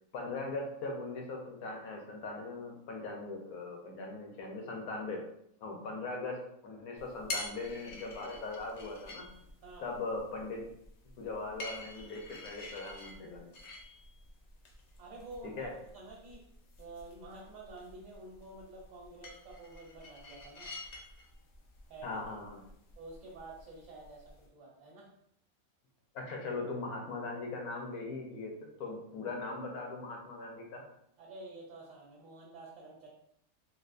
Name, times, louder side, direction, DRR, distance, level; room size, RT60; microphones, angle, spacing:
voice 1, 0.1-5.3 5.6-9.3 9.8-10.7 11.2-13.5 15.4-15.7 22.0-22.6 26.1-30.8, left 3 dB, 80° left, 0 dB, 1.2 m, -40 dB
sound 1, 7.0-24.5, left 2 dB, 65° left, 0.8 m, -48 dB
voice 2, 15.0-16.5 16.8-20.7 21.9-22.2 23.0-25.1 31.2-33.1, right 2 dB, 70° right, -4 dB, 1.1 m, -49 dB
3.6 x 2.3 x 2.5 m, 0.73 s
omnidirectional pair, 1.5 m